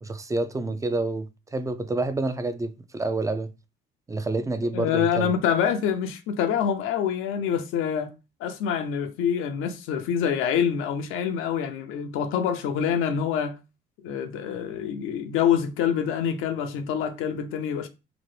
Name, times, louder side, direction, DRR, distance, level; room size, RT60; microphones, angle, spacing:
voice 1, 0.0-1.3 1.5-3.5 4.1-5.3, right 2 dB, 15° right, 0.3 m, -28 dB
voice 2, 4.7-8.1 8.4-13.6 14.0-17.9, left 8 dB, 85° left, 0.5 m, -26 dB
2.9 x 2.1 x 3.1 m
cardioid pair, 80°, 21 cm